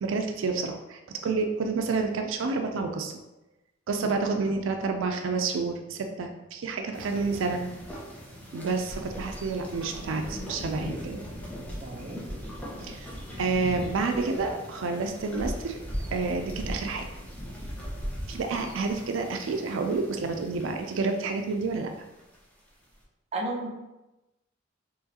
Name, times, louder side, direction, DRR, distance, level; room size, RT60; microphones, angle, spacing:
voice 1, 0.0-3.2 3.9-7.6 8.5-11.2 12.8-13.1 13.4-15.8 16.1-17.1 18.3-21.9, right 4 dB, 90° right, 4 dB, 0.4 m, -29 dB
sound 1, 6.9-22.3, equal, 10° left, 0.9 m, -39 dB
voice 2, 11.8-12.2 23.3-23.7, right 2 dB, 35° right, -2 dB, 0.7 m, -32 dB
4.6 x 3.1 x 2.8 m, 0.99 s
head